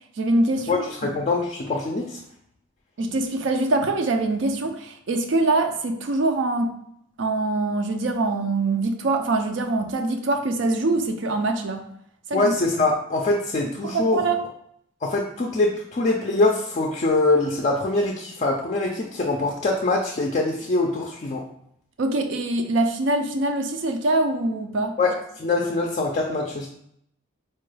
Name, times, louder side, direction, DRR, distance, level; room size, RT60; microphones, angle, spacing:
voice 1, 0.2-0.8 3.0-6.7 7.2-11.8 12.3-12.5 13.8-14.4 22.0-25.0, right 2 dB, 60° right, 5 dB, 0.4 m, -24 dB
voice 2, 0.7-2.2 12.3-14.2 15.0-21.4 25.0-26.7, left 2 dB, 35° left, 0 dB, 0.4 m, -23 dB
4.3 x 2.2 x 3.2 m, 0.70 s
head